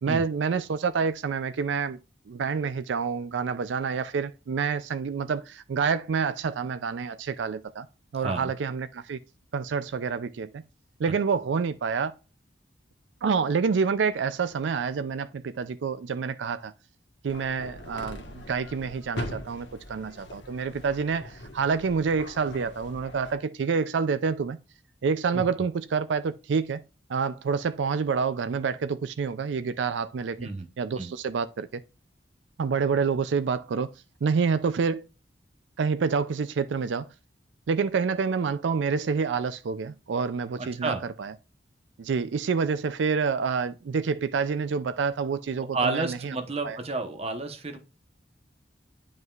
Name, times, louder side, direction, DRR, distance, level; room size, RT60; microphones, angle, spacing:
voice 1, 0.0-2.0 2.3-7.9 8.1-9.2 9.5-10.6 11.0-12.1 13.2-16.7 17.2-24.6 25.0-26.8 27.1-30.5 30.8-31.8 32.6-33.9 34.2-35.0 35.8-37.1 37.7-41.3 42.0-46.4 46.6-46.8, right 5 dB, 80° right, 0.4 m, -28 dB
voice 2, 8.2-8.5 25.3-25.4 30.4-30.7 31.0-31.1 40.6-41.0 45.6-47.8, right 3 dB, 35° right, 1.0 m, -31 dB
sound 1, 17.3-23.3, left 1 dB, 75° left, 1.4 m, -41 dB
9.3 x 5.4 x 2.4 m
head